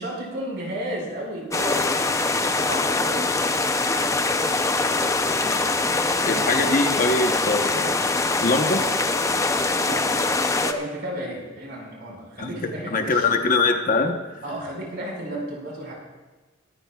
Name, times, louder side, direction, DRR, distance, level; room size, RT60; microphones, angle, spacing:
voice 1, 0.0-2.0 2.7-3.2 9.8-10.3 10.6-13.3 14.4-15.9, right 1 dB, 60° right, -3 dB, 5.4 m, -33 dB
sound 1, 1.5-10.7, left 3 dB, 15° left, 0.6 m, -23 dB
voice 2, 6.2-7.9 8.4-8.8 12.4-14.2, left 3 dB, 40° left, 5 dB, 1.1 m, -23 dB
23.0 x 14.0 x 2.4 m, 1.2 s
head